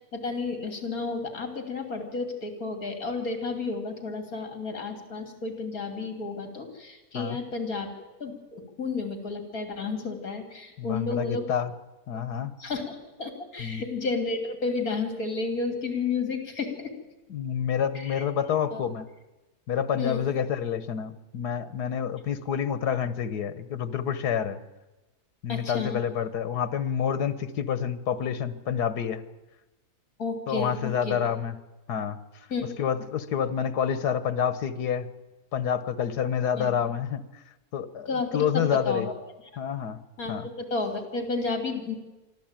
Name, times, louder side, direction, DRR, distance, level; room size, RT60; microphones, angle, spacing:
voice 1, 0.1-7.9 8.2-11.5 12.1-12.2 12.6-16.9 17.9-18.2 18.7-18.8 20.0-20.3 25.5-26.0 30.2-31.2 32.5-32.8 36.6-36.7 38.1-39.1 40.2-42.0, left 4 dB, 65° left, 6 dB, 3.6 m, -32 dB
voice 2, 10.8-11.7 12.1-12.5 13.6-13.8 17.3-19.1 19.7-24.6 25.4-29.2 30.5-31.5 31.9-32.2 32.8-35.1 35.5-37.2 37.7-38.1 38.3-39.1 39.6-40.0 40.3-40.5, left 8 dB, 85° left, 14 dB, 1.7 m, -28 dB
24.5 x 14.0 x 9.0 m, 1.1 s
omnidirectional pair, 1.7 m